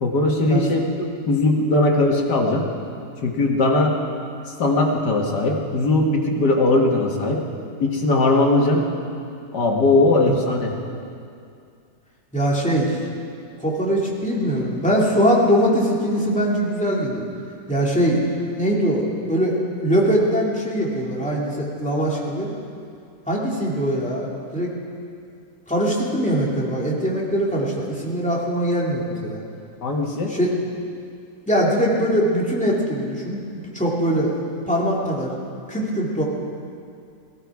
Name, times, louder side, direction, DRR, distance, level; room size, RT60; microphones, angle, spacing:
voice 1, 0.0-0.8 1.3-2.7 3.2-4.0 4.6-7.4 7.8-8.8 9.5-10.7 29.8-30.3, left 2 dB, 70° left, 0 dB, 2.2 m, -19 dB
voice 2, 12.3-13.0 13.6-17.3 17.7-18.2 18.5-22.5 23.3-24.7 25.7-29.4 30.3-30.5 31.5-34.3 34.7-35.4 35.7-36.2, equal, 5° left, -4 dB, 2.3 m, -22 dB
17.5 x 15.0 x 4.8 m, 2.4 s
omnidirectional pair, 1.9 m